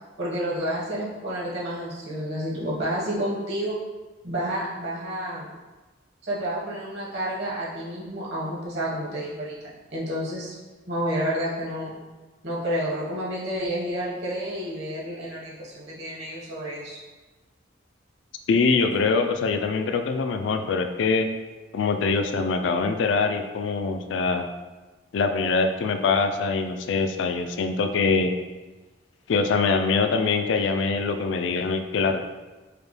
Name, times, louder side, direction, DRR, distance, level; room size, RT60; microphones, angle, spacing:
voice 1, 0.2-3.8 4.2-5.5 6.2-9.6 9.9-10.5 10.9-11.9 12.4-17.0, equal, 65° right, -7 dB, 1.4 m, -30 dB
voice 2, 18.5-21.3 21.7-24.5 25.1-28.3 29.3-32.2, left 4 dB, 80° left, 7 dB, 0.3 m, -23 dB
4.9 x 2.2 x 3.1 m, 1.2 s
head